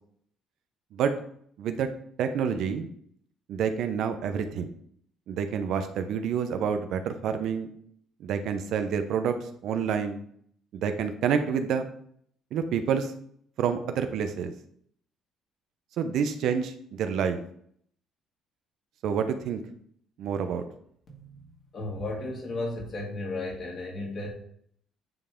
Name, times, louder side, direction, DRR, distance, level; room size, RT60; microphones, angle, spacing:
voice 1, 1.6-1.9 2.2-2.9 3.5-4.7 5.3-7.7 8.2-10.2 10.7-11.9 12.5-13.1 13.6-14.5 16.0-17.4 19.0-19.6 20.2-20.6, right 7 dB, 70° right, 8 dB, 0.7 m, -28 dB
voice 2, 21.1-24.3, left 2 dB, 45° left, -1 dB, 2.2 m, -35 dB
9.1 x 3.3 x 3.7 m, 0.64 s
cardioid pair, 105°, 0 cm